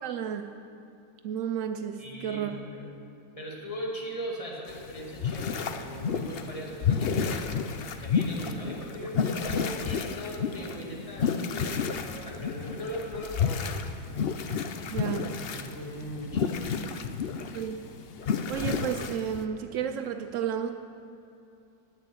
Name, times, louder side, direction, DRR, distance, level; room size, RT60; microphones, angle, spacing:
voice 1, 0.0-0.5 1.2-2.6 14.9-15.3 17.5-17.8 18.5-20.8, right 8 dB, 75° right, 8 dB, 0.7 m, -32 dB
voice 2, 2.0-2.9 3.4-7.6 8.0-13.8 15.4-16.7, equal, 20° left, -3 dB, 2.3 m, -39 dB
sound 1, 4.7-19.4, left 6 dB, 75° left, 0.5 m, -31 dB
16.5 x 6.7 x 9.5 m, 2.6 s
omnidirectional pair, 1.9 m